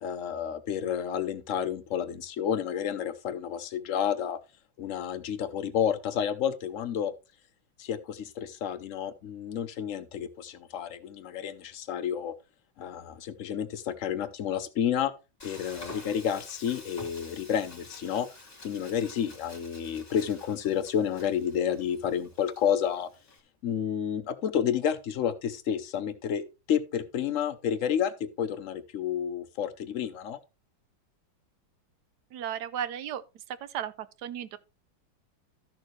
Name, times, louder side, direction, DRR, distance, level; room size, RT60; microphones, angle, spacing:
voice 1, 0.0-4.4 4.8-7.1 7.8-12.3 12.8-15.1 15.4-18.3 18.6-23.1 23.6-30.4, left 8 dB, 70° left, 0.7 m, -30 dB
Frying (food), 15.4-23.4, left 2 dB, 20° left, 2.2 m, -49 dB
voice 2, 32.3-34.6, right 9 dB, 70° right, 1.0 m, -35 dB
13.0 x 6.6 x 3.1 m
omnidirectional pair, 2.2 m